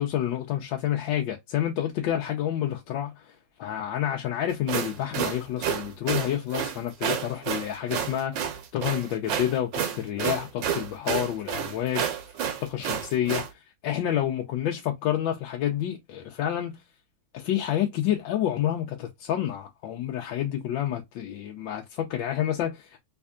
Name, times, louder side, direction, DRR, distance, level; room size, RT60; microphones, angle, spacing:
voice 1, 0.0-12.1 12.6-16.7 17.3-23.0, left 11 dB, 80° left, 1.4 m, -29 dB
sound 1, 4.5-13.5, right 8 dB, 75° right, 1.4 m, -30 dB
3.5 x 3.4 x 2.3 m
omnidirectional pair, 2.1 m